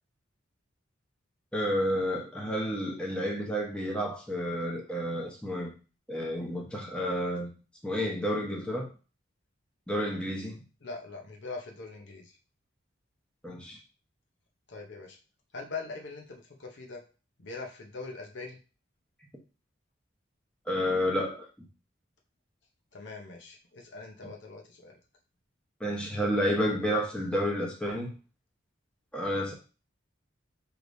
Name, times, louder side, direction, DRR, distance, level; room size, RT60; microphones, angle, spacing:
voice 1, 1.5-5.7 6.1-7.5 7.8-8.9 9.9-10.6 13.4-13.8 20.7-21.7 25.8-28.1 29.1-29.5, equal, 5° left, -2 dB, 0.9 m, -30 dB
voice 2, 10.8-12.4 14.7-15.2 15.5-17.0 17.4-18.6 22.9-25.0, left 3 dB, 60° left, 2 dB, 0.8 m, -42 dB
4.9 x 3.2 x 2.6 m, 0.34 s
head